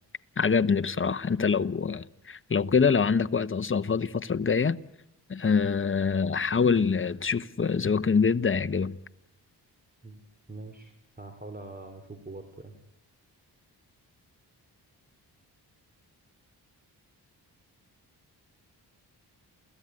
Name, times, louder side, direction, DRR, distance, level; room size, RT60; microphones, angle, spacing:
voice 1, 0.4-4.8 5.3-9.0, left 5 dB, 30° left, 1.1 m, -25 dB
voice 2, 10.5-12.7, right 2 dB, 20° right, 3.4 m, -43 dB
28.5 x 16.5 x 9.8 m
cardioid pair, 70°, 41 cm